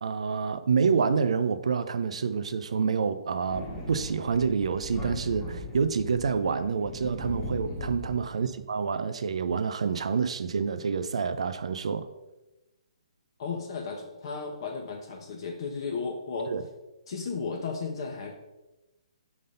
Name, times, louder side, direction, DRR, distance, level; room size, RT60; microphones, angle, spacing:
voice 1, 0.0-12.1 16.5-16.6, right 5 dB, 65° right, 0.4 m, -28 dB
Thunder, 3.5-8.6, left 1 dB, 15° left, 1.2 m, -39 dB
voice 2, 7.6-7.9 13.4-16.5 17.1-18.4, left 4 dB, 50° left, 0.8 m, -34 dB
5.1 x 3.9 x 5.4 m
figure-of-eight pair, 135°, 3 cm